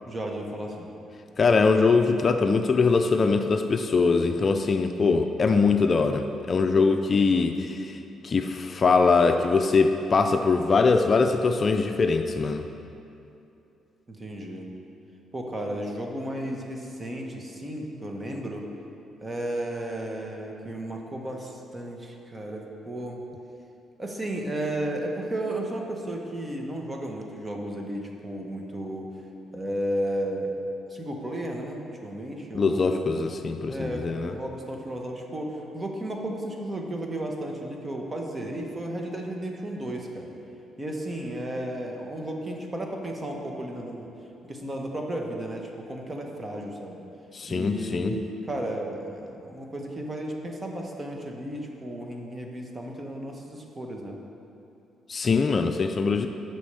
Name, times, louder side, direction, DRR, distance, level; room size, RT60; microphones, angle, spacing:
voice 1, 0.0-1.0 14.1-14.7 15.3-18.6 19.2-23.2 24.0-29.1 29.5-30.6 30.9-33.1 33.7-40.3 40.8-44.1 44.5-47.0 47.5-54.2, right 1 dB, 25° right, 1 dB, 1.3 m, -33 dB
voice 2, 1.4-12.6 32.5-34.3 47.3-48.2 55.1-56.3, left 4 dB, 40° left, 6 dB, 0.5 m, -22 dB
8.4 x 6.1 x 6.9 m, 2.8 s
cardioid pair, 90°, 0 cm